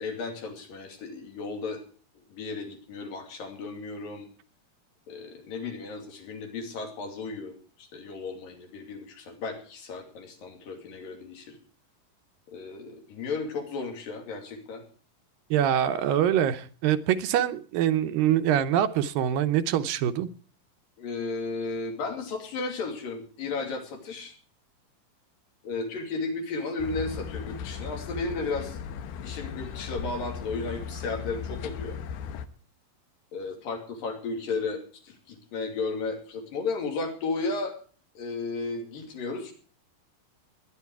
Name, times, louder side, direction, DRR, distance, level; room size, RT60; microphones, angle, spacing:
voice 1, 0.0-1.8 2.2-4.3 5.1-11.6 12.5-14.8 21.0-24.3 25.6-28.8 29.2-32.0 33.3-37.8 38.2-39.5, left 3 dB, 70° left, 4 dB, 4.4 m, -34 dB
voice 2, 15.5-20.3, right 10 dB, 80° right, 9 dB, 2.5 m, -24 dB
sound 1, 26.8-32.5, left 7 dB, 85° left, 2.9 m, -37 dB
21.0 x 10.5 x 4.7 m, 0.41 s
omnidirectional pair, 4.2 m